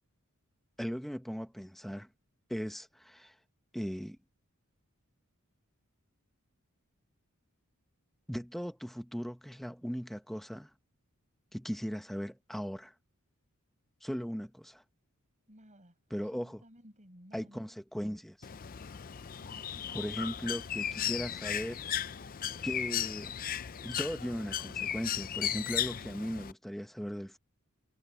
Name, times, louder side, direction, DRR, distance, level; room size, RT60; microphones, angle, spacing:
voice 1, 0.8-2.1 2.5-3.3 3.7-4.2 8.3-10.7 11.5-12.9 14.0-14.8 16.1-16.6 17.3-18.4 19.9-21.9 22.6-23.3 23.8-27.4, equal, ahead, 1.3 m, -38 dB
voice 2, 15.5-17.7 19.4-21.4, equal, 35° right, 6.9 m, -57 dB
Bird, 18.4-26.5, left 10 dB, 40° left, 0.5 m, -36 dB
head